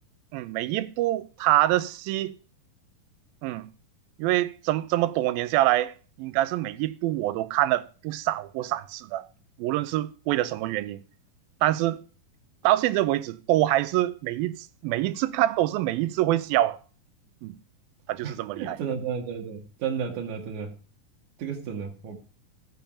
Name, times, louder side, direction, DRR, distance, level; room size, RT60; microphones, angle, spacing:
voice 1, 0.3-2.3 3.4-3.7 4.2-9.3 9.6-11.0 11.6-12.0 12.6-16.8 17.4-17.5 18.1-18.8, right 15 dB, 80° right, 2.5 m, -25 dB
voice 2, 18.2-20.7 21.4-22.2, right 7 dB, 60° right, 2.8 m, -32 dB
15.5 x 5.7 x 8.7 m
omnidirectional pair, 4.2 m